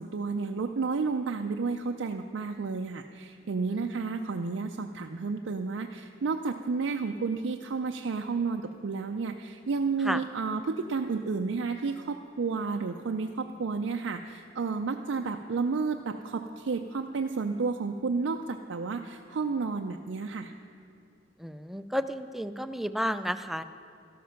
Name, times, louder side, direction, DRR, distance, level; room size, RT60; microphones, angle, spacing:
voice 1, 0.0-20.5, right 4 dB, 75° right, 4 dB, 0.5 m, -31 dB
voice 2, 21.4-23.6, equal, ahead, 11 dB, 0.3 m, -32 dB
12.5 x 12.5 x 5.8 m, 2.5 s
head